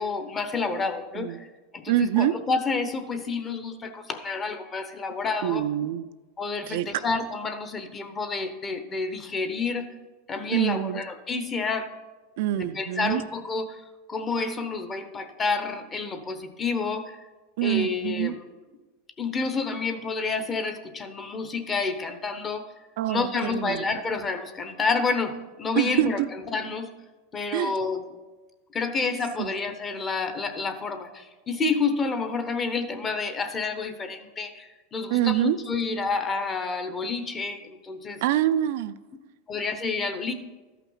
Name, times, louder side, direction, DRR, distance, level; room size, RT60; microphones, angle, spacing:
voice 1, 0.0-1.4 1.7-5.7 6.4-9.9 10.3-11.9 12.6-13.8 14.1-17.2 17.6-18.4 19.2-22.7 23.1-26.9 27.3-28.0 28.7-38.2 39.5-40.3, left 4 dB, 20° left, 8 dB, 0.9 m, -29 dB
voice 2, 1.9-2.3 5.4-6.1 6.7-6.9 10.5-11.0 12.4-13.2 17.6-18.4 23.0-23.9 25.7-26.3 27.5-27.7 29.4-29.5 35.1-35.6 38.2-39.0, right 13 dB, 65° right, 11 dB, 0.4 m, -25 dB
13.0 x 5.8 x 5.6 m, 1.2 s
supercardioid pair, 135°, 0 cm